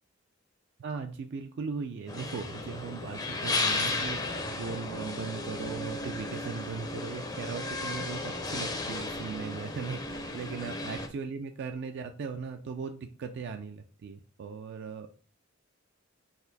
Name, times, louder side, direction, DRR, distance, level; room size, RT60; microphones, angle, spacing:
voice 1, 0.8-15.1, right 5 dB, 55° right, 6 dB, 0.3 m, -38 dB
sound 1, 2.1-11.1, left 2 dB, 20° left, 0.5 m, -34 dB
4.1 x 2.6 x 3.9 m, 0.40 s
head